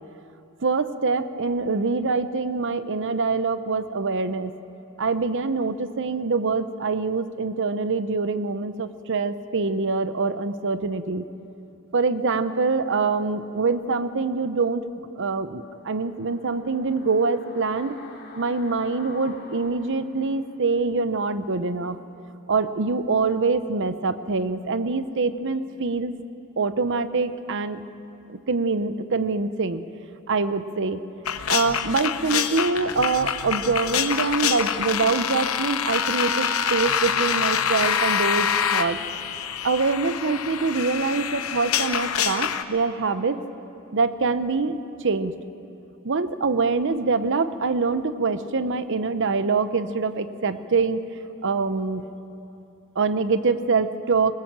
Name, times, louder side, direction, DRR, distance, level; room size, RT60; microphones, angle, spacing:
voice 1, 0.6-4.5 5.0-11.2 11.9-14.8 15.2-17.9 18.4-22.0 22.5-26.1 26.6-27.8 28.3-29.8 30.3-31.0 31.5-39.0 39.6-43.4 43.9-45.4 46.0-51.0 51.4-52.1 53.0-54.3, right 4 dB, 60° right, 12 dB, 0.8 m, -24 dB
sound 1, 15.6-20.7 21.0-21.1, left 3 dB, 55° left, 3.0 m, -47 dB
sound 2, 31.2-42.6, left 8 dB, 80° left, 0.9 m, -26 dB
20.5 x 19.5 x 7.5 m, 2.8 s
head